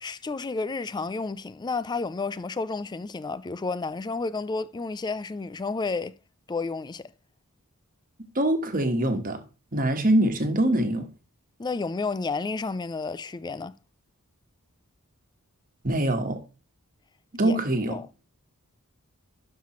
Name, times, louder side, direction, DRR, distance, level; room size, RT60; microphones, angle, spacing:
voice 1, 0.0-6.1 6.5-7.0 11.6-13.7 17.4-17.6 17.9-18.1, left 3 dB, 20° left, 0.3 m, -31 dB
voice 2, 8.3-9.4 9.7-11.1 15.8-16.4 17.3-18.0, right 1 dB, 40° right, 1.4 m, -24 dB
11.5 x 5.7 x 3.1 m
head